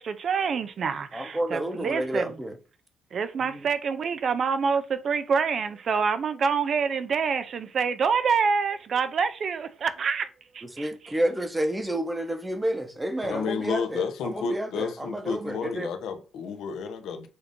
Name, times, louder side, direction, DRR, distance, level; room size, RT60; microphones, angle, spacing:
voice 1, 0.0-2.4 3.1-10.3 10.5-10.9, right 5 dB, 40° right, 0.6 m, -26 dB
voice 2, 1.1-2.6 3.4-3.7 10.6-15.9, right 1 dB, 10° right, 0.8 m, -30 dB
voice 3, 13.2-17.3, left 5 dB, 80° left, 1.0 m, -31 dB
6.9 x 2.7 x 5.2 m
cardioid pair, 160°, 0 cm